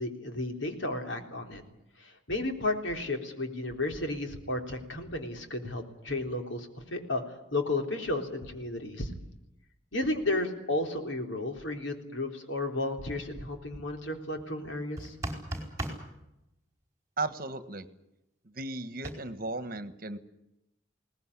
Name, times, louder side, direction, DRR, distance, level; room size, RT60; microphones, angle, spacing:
voice 1, 0.0-1.6 2.0-7.2 7.5-9.1 9.9-15.1, left 2 dB, 80° left, 4 dB, 3.7 m, -33 dB
sound 1, 15.0-16.0 19.0-19.1, right 1 dB, 15° right, 4.8 m, -35 dB
voice 2, 17.2-17.9 18.4-20.2, right 2 dB, 50° right, 11 dB, 1.5 m, -35 dB
21.5 x 19.0 x 9.9 m, 0.88 s
head